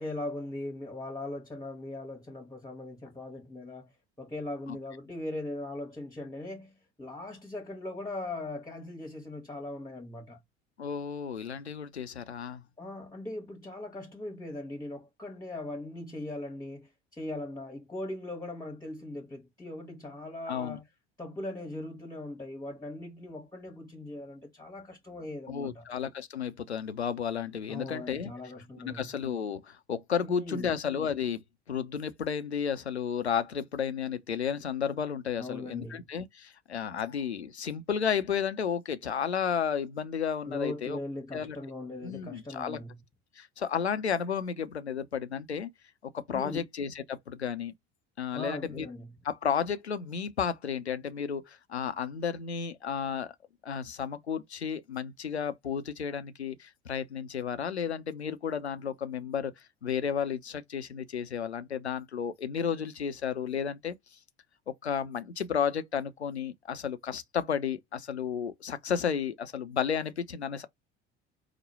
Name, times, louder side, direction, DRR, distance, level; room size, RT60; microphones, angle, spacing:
voice 1, 0.0-3.9 4.2-10.4 12.8-20.9 21.2-25.9 27.7-29.1 30.2-30.7 35.4-36.1 40.5-43.0 46.3-46.7 48.3-49.2, left 2 dB, 10° left, 1.1 m, -39 dB
voice 2, 10.8-12.6 20.5-20.8 25.5-28.3 28.8-31.4 31.7-41.0 41.3-41.6 42.0-42.8 43.4-45.7 46.1-47.7 48.2-48.9 49.2-53.3 53.6-59.5 59.8-63.9 64.8-70.7, left 7 dB, 90° left, 0.6 m, -32 dB
4.9 x 2.1 x 4.1 m
figure-of-eight pair, 65°, 32 cm